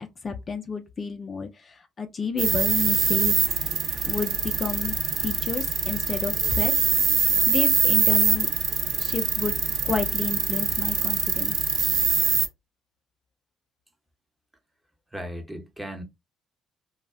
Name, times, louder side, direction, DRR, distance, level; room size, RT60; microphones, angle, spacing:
voice 1, 0.2-3.3 4.0-4.9 5.2-6.7 7.2-8.5 9.0-9.6 9.8-11.6, left 5 dB, 40° left, 0.4 m, -31 dB
sound 1, 2.4-12.5, right 6 dB, 60° right, 0.6 m, -24 dB
voice 2, 15.1-16.0, equal, 10° right, 0.8 m, -36 dB
2.3 x 2.1 x 3.4 m
hypercardioid pair, 60°, 0 cm